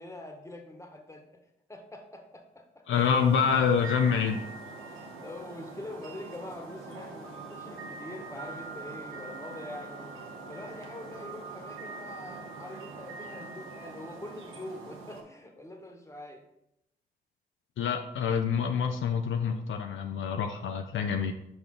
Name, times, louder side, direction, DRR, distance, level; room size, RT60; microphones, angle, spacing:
voice 1, 0.0-1.4 1.7-2.8 4.8-10.1 10.5-16.4, left 1 dB, 15° left, 4 dB, 1.3 m, -44 dB
voice 2, 2.9-4.5 17.8-21.3, left 6 dB, 70° left, 5 dB, 0.5 m, -26 dB
sound 1, 2.9-15.2, right 3 dB, 75° right, 0.9 m, -43 dB
5.0 x 4.9 x 3.8 m, 0.82 s
supercardioid pair, 40°, 21 cm